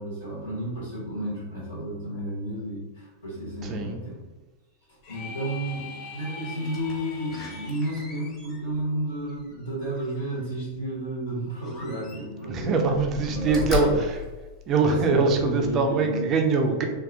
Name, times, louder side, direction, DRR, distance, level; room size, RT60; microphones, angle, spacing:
voice 1, 0.0-4.2 5.1-12.9 13.3-14.0 14.8-16.3, right 1 dB, 75° left, -5 dB, 0.9 m, -32 dB
voice 2, 3.6-4.0 12.5-14.2 14.7-16.8, right 4 dB, 30° right, 4 dB, 0.4 m, -23 dB
sound 1, 5.0-7.8, left 5 dB, 45° left, 0.5 m, -41 dB
Slam, 6.6-10.5 11.6-12.5 12.9-15.2 15.7-15.8, left 7 dB, 25° left, 0.9 m, -37 dB
3.7 x 2.3 x 2.5 m, 1.2 s
figure-of-eight pair, 90°, 0 cm